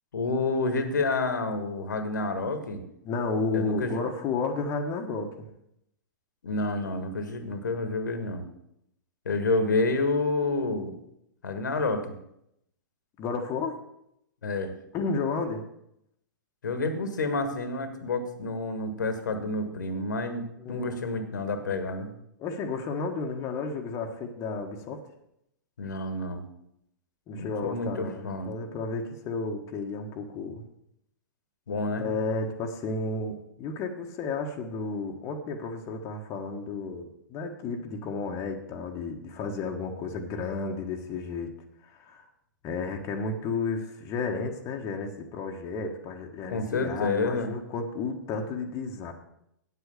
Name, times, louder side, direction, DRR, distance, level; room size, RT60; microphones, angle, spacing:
voice 1, 0.1-2.8 3.5-4.0 6.4-8.5 9.2-10.9 11.4-12.2 14.4-14.7 16.6-22.1 25.8-26.5 27.3-28.5 31.7-32.1 46.5-47.5, left 3 dB, 70° left, 9 dB, 1.5 m, -29 dB
voice 2, 3.0-5.3 13.2-13.8 14.9-15.6 20.6-21.0 22.4-25.0 27.3-30.6 32.0-41.5 41.8-42.2 42.6-49.1, left 4 dB, 30° left, 2 dB, 1.3 m, -32 dB
9.0 x 8.1 x 6.9 m, 0.77 s
figure-of-eight pair, 110°, 10 cm